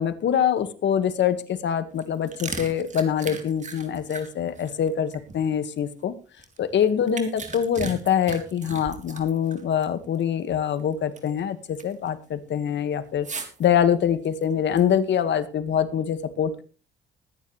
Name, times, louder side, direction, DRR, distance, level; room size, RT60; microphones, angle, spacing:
voice 1, 0.0-6.2 6.6-13.3 13.6-16.6, left 8 dB, 65° left, 1.8 m, -24 dB
sound 1, 1.9-5.9 6.4-9.9 10.2-10.3 10.8-11.4 11.8-12.1 13.2-13.7 14.2-15.2, right 4 dB, 35° right, 3.5 m, -37 dB
21.5 x 9.9 x 3.3 m
cardioid pair, 90°, 20 cm